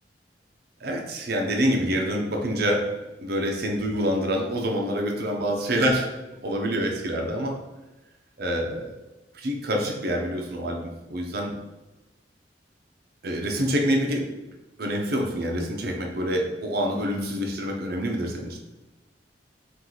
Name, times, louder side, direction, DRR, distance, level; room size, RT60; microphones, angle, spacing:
voice 1, 0.8-2.9 3.2-6.1 6.4-7.6 8.4-8.9 9.3-11.5 13.2-14.3 14.8-18.6, equal, 60° right, 1 dB, 0.8 m, -26 dB
4.6 x 2.6 x 3.9 m, 1.1 s
head